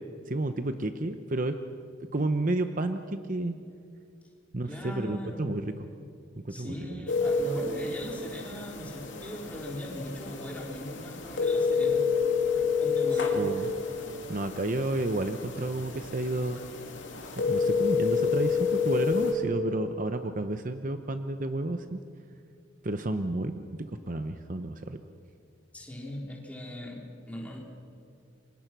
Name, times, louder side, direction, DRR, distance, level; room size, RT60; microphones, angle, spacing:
voice 1, 0.3-1.6 2.1-3.6 4.5-5.7 6.4-7.0 13.1-13.7 14.3-16.6 17.3-22.0 22.8-25.0, right 2 dB, 40° right, 8 dB, 0.8 m, -31 dB
voice 2, 4.7-5.5 6.5-12.0 12.8-13.5 25.7-27.6, left 1 dB, 5° left, -2 dB, 3.9 m, -39 dB
sound 1, 7.1-19.3, left 5 dB, 70° left, 3.1 m, -29 dB
29.0 x 24.5 x 6.1 m, 2.4 s
head